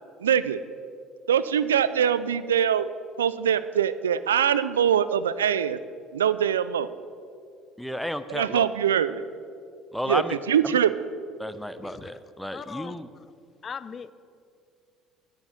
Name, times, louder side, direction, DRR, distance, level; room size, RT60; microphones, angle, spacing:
voice 1, 0.2-0.6 1.3-2.9 3.2-5.8 6.1-6.9 8.3-9.2 10.1-10.2 10.5-10.9, right 9 dB, 90° right, 15 dB, 0.3 m, -23 dB
voice 2, 7.8-8.7 9.9-10.4 11.4-13.1, equal, ahead, 12 dB, 0.7 m, -32 dB
voice 3, 12.5-12.9 13.6-14.1, left 6 dB, 40° left, 15 dB, 0.5 m, -38 dB
9.7 x 9.0 x 5.7 m, 2.3 s
hypercardioid pair, 65°, 0 cm